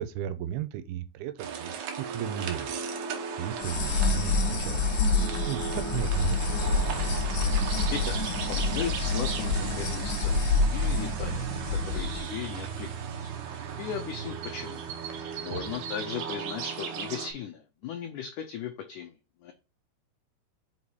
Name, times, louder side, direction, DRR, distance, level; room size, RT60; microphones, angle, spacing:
voice 1, 0.0-2.9 3.4-4.8 5.1-5.2 5.5-6.7 15.5-15.6, right 11 dB, 90° right, 2.6 m, -35 dB
sound 1, 1.4-17.3, right 7 dB, 70° right, 1.9 m, -36 dB
sound 2, 3.6-12.2, left 3 dB, 65° left, 2.1 m, -27 dB
voice 2, 8.5-10.4 10.7-11.5 11.8-12.9 13.2-14.8 15.2-19.1 19.4-19.5, left 8 dB, 85° left, 1.8 m, -37 dB
5.8 x 4.1 x 4.6 m
omnidirectional pair, 4.5 m